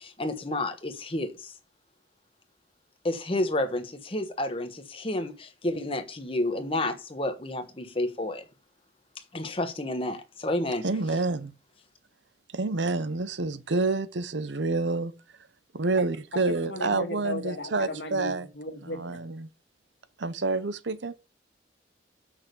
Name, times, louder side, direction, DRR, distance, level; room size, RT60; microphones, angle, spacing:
voice 1, 0.0-1.5 3.0-8.4 9.3-10.8, left 1 dB, 30° left, 1.2 m, -30 dB
voice 2, 10.8-11.5 12.5-15.1 15.7-18.5 18.8-19.5 20.2-21.2, right 3 dB, 85° right, 0.8 m, -28 dB
voice 3, 16.3-19.2, left 1 dB, 75° left, 1.8 m, -36 dB
6.4 x 6.0 x 6.7 m
head